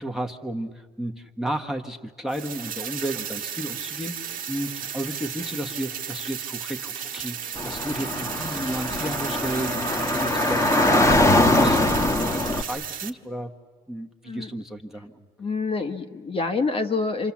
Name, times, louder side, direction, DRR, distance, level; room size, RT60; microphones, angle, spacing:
voice 1, 0.0-13.5 13.9-15.2, right 1 dB, ahead, 2 dB, 1.4 m, -33 dB
sound 1, 2.3-13.1, right 8 dB, 55° right, 1.4 m, -34 dB
Car / Traffic noise roadway noise, 7.6-12.6, left 1 dB, 15° left, 1.4 m, -22 dB
voice 2, 15.4-17.3, left 3 dB, 35° left, 5 dB, 1.3 m, -27 dB
28.0 x 26.5 x 7.3 m, 1.4 s
cardioid pair, 110°, 17 cm